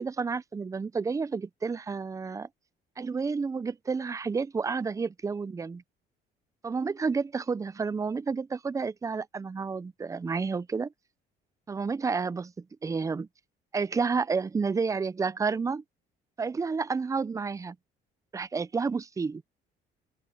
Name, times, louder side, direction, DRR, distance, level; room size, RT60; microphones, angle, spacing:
voice 1, 0.0-2.5 3.0-5.8 6.6-10.9 11.7-13.3 13.7-15.8 16.4-17.8 18.3-19.4, right 5 dB, 20° right, 0.6 m, -30 dB
open air
cardioid pair, 110°, 17 cm